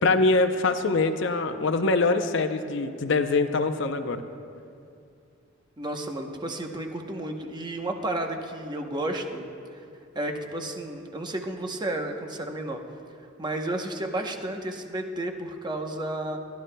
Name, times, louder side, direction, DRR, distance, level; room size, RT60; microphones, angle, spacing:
voice 1, 0.0-4.2, left 3 dB, 65° left, 8 dB, 0.6 m, -23 dB
voice 2, 5.8-9.4 9.7-9.8 10.1-12.8 13.4-16.4, right 1 dB, 20° right, 3 dB, 0.8 m, -32 dB
27.0 x 11.5 x 2.2 m, 2.5 s
head